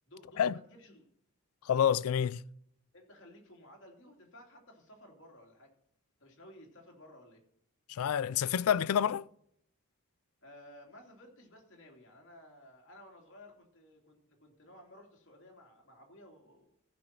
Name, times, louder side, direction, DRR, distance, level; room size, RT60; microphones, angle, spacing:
voice 1, 0.1-1.1 2.9-5.7 6.2-7.4 10.4-16.7, left 1 dB, 55° left, 2.9 m, -55 dB
voice 2, 1.7-2.4 7.9-9.3, left 8 dB, 85° left, 0.4 m, -28 dB
15.0 x 6.1 x 5.9 m
head